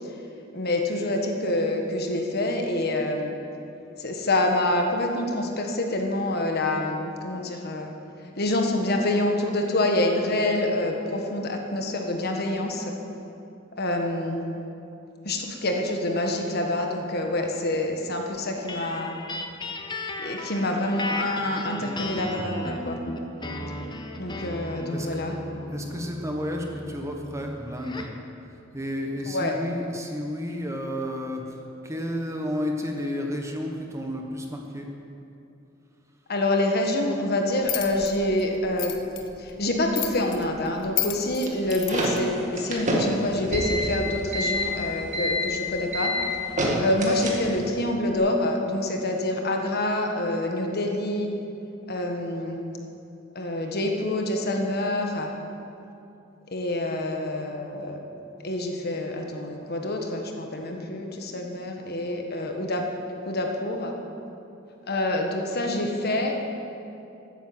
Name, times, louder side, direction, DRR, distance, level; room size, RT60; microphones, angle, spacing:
voice 1, 0.5-3.3 4.0-7.9 8.4-12.9 13.8-14.4 15.2-19.1 20.2-23.0 24.2-25.3 29.3-29.6 36.3-39.0 39.4-46.1 46.8-51.3 51.9-52.6 53.3-55.3 56.5-58.0 58.4-62.9 63.2-63.9 64.9-66.5, left 1 dB, 50° left, 2 dB, 1.5 m, -26 dB
sound 1, 18.7-28.2, left 1 dB, 25° left, 0.9 m, -35 dB
voice 2, 24.9-25.2 25.7-28.1 28.7-34.9, left 1 dB, 15° right, 2 dB, 1.2 m, -32 dB
sound 2, 37.6-42.2, left 13 dB, 70° left, 1.0 m, -34 dB
sound 3, 41.5-47.7, equal, 35° right, 2.1 m, -27 dB
13.5 x 9.2 x 7.9 m, 2.7 s
head